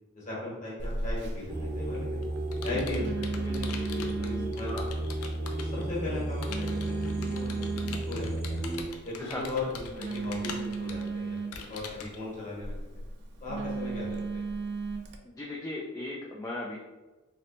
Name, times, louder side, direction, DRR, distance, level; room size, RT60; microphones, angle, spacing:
voice 1, 0.1-2.2 2.6-3.7 3.9-5.0 5.6-8.6 9.0-11.4 11.7-13.0 13.4-14.5, left 2 dB, 35° left, -5 dB, 1.1 m, -38 dB
Telephone, 0.8-15.2, right 4 dB, 55° right, 0.4 m, -37 dB
sound 1, 1.5-8.8, right 1 dB, 15° right, 0.8 m, -33 dB
Computer keyboard, 1.8-5.8 6.4-12.2, left 5 dB, 80° left, 0.4 m, -43 dB
voice 2, 15.2-16.8, left 2 dB, 15° left, -4 dB, 0.3 m, -37 dB
3.0 x 3.0 x 2.9 m, 1.1 s
head